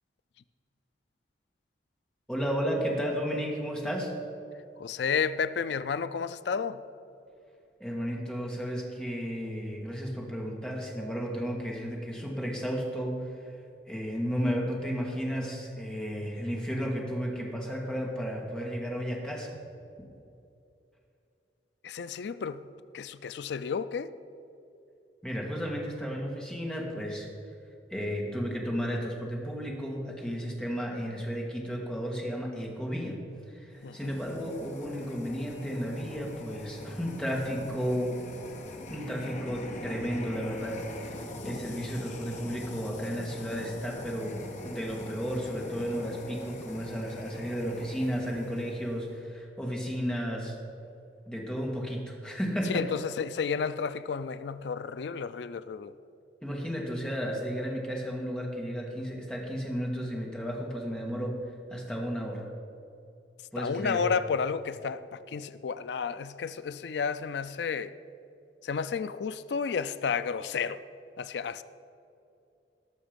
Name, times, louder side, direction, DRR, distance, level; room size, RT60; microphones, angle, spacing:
voice 1, 2.3-4.1 7.8-13.2 13.8-19.5 25.2-27.3 27.9-33.2 33.5-38.1 38.9-50.5 51.3-52.8 56.4-61.4 61.7-62.4 63.5-64.0, equal, 5° left, -2 dB, 1.9 m, -33 dB
voice 2, 4.8-6.8 21.8-22.7 22.9-24.1 33.8-34.1 52.7-55.9 63.6-67.9 68.6-70.8 71.2-71.6, left 6 dB, 70° left, 14 dB, 0.4 m, -32 dB
sound 1, 33.8-49.2, left 1 dB, 45° left, 1.2 m, -43 dB
18.0 x 6.3 x 5.2 m, 2.6 s
head